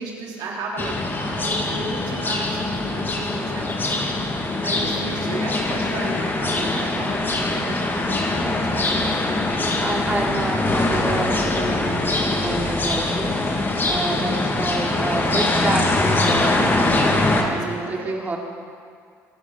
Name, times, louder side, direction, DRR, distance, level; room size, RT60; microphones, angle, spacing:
voice 1, 0.0-8.9 16.9-18.2, right 3 dB, 70° right, -2 dB, 3.8 m, -34 dB
sound 1, 0.8-17.4, left 2 dB, 30° left, 2.4 m, -23 dB
voice 2, 9.8-13.6 13.8-16.7 17.4-18.4, right 2 dB, 25° right, 0 dB, 3.1 m, -28 dB
24.0 x 10.5 x 4.2 m, 2.3 s
hypercardioid pair, 65°, 7 cm